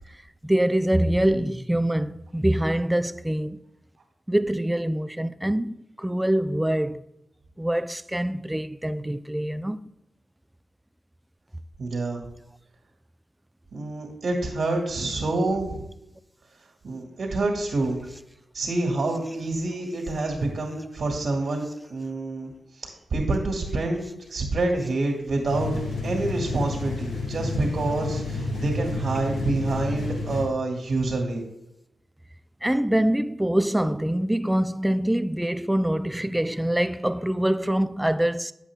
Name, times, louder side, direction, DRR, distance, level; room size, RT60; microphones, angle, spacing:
voice 1, 0.4-3.6 4.3-7.1 7.6-9.8 32.6-38.5, right 1 dB, 10° right, 0.4 m, -24 dB
voice 2, 11.8-12.2 13.7-15.8 16.8-18.0 18.5-21.6 21.9-22.5 22.8-24.1 24.3-25.7 26.0-31.5, right 2 dB, 65° right, 2.0 m, -27 dB
sound 1, 25.5-30.4, left 2 dB, 75° left, 2.2 m, -30 dB
8.3 x 7.3 x 3.6 m
cardioid pair, 60°, 0 cm